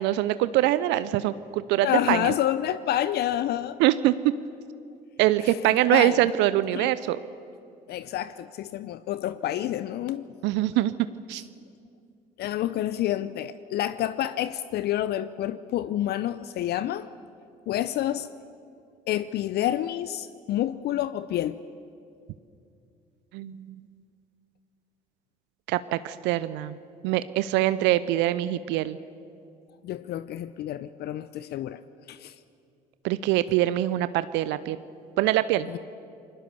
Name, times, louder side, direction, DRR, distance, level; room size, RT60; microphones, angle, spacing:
voice 1, 0.0-2.3 3.8-4.3 5.2-7.2 10.4-10.9 11.3-11.4 23.3-23.8 25.7-26.8 27.0-29.0 33.0-34.8 35.2-35.7, right 14 dB, 65° right, 14 dB, 0.7 m, -24 dB
voice 2, 1.8-3.8 5.9-6.3 6.7-6.9 7.9-10.3 12.4-17.1 17.7-18.3 19.1-21.6 29.8-31.8 32.1-32.3 35.7-35.8, left 12 dB, 55° left, 15 dB, 0.7 m, -28 dB
29.5 x 20.5 x 6.9 m, 2.5 s
hypercardioid pair, 60°, 20 cm